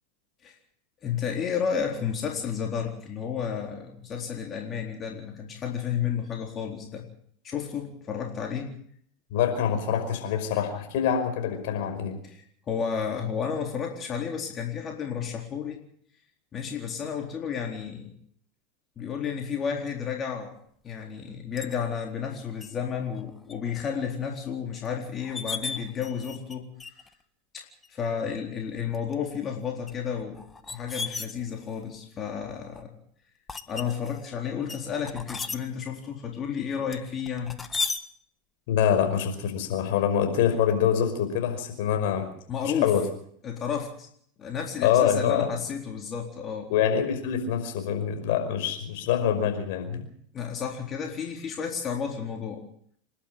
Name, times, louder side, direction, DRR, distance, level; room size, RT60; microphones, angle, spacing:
voice 1, 1.0-7.0 7.4-8.7 12.2-15.8 16.5-18.1 19.0-20.5 20.8-26.7 27.5-32.9 33.7-37.5 42.5-42.9 43.4-44.1 44.4-46.7 50.3-52.6, left 7 dB, 35° left, 1 dB, 4.0 m, -32 dB
voice 2, 9.3-12.2 38.7-42.3 42.6-43.0 44.8-45.5 46.7-50.1, left 8 dB, 65° left, 6 dB, 5.3 m, -25 dB
sound 1, 21.6-21.8 22.6-22.7 23.1-23.5 24.0-24.1 24.8-24.9 25.2-26.5 26.8-27.1 27.8-27.9 28.8-29.1 29.9-31.8 32.4-32.8 33.5-34.2 34.7-35.6 36.9-38.0, left 4 dB, 20° left, 1.6 m, -35 dB
27.5 x 12.0 x 8.8 m, 0.64 s
hypercardioid pair, 90°, 0 cm